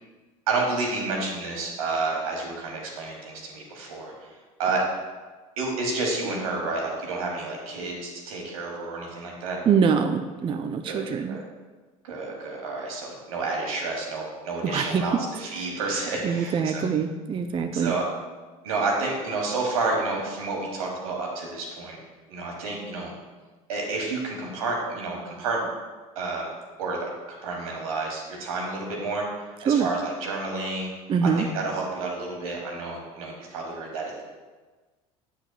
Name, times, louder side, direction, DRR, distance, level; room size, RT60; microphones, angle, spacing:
voice 1, 0.5-4.1 4.6-4.8 5.6-9.6 10.8-11.4 12.0-16.8 17.7-18.0 18.6-22.0 22.3-23.1 23.7-25.6 26.1-26.5 26.8-27.1 27.4-29.3 29.6-30.9 31.2-34.2, right 3 dB, 80° right, 0 dB, 1.5 m, -30 dB
voice 2, 9.7-11.4 14.6-15.2 15.6-15.8 16.2-18.0 29.7-29.9 31.1-31.5, right 6 dB, 30° right, 6 dB, 0.4 m, -24 dB
8.2 x 5.7 x 2.3 m, 1.3 s
hypercardioid pair, 70°, 18 cm